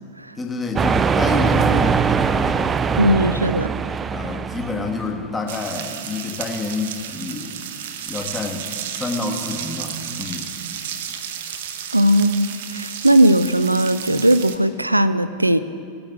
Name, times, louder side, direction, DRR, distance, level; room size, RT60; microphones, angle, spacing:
voice 1, 0.4-3.0 3.2-3.4 4.1-7.6 8.1-10.5, left 3 dB, 15° left, 2 dB, 1.5 m, -28 dB
sound 1, 0.8-5.3, right 6 dB, 20° right, 0.4 m, -21 dB
voice 2, 3.0-3.7 11.9-15.6, right 1 dB, 85° right, 14 dB, 0.4 m, -18 dB
sound 2, 5.5-14.6, right 9 dB, 55° right, 0.8 m, -32 dB
18.0 x 8.7 x 3.5 m, 2.4 s
figure-of-eight pair, 90°, 0 cm